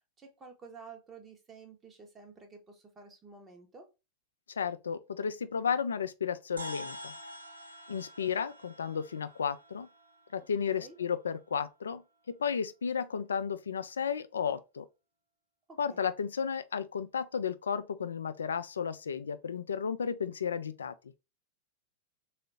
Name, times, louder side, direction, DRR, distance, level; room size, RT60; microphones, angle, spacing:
voice 1, 0.2-3.9 10.7-11.0 15.7-16.0, right 4 dB, 20° right, 0.9 m, -51 dB
voice 2, 4.5-7.1 7.9-9.9 10.3-12.0 12.3-14.9 15.8-20.9, left 7 dB, 70° left, 0.3 m, -33 dB
sound 1, 6.6-11.2, equal, 80° right, 0.6 m, -47 dB
3.7 x 2.5 x 3.3 m
figure-of-eight pair, 90°, 0 cm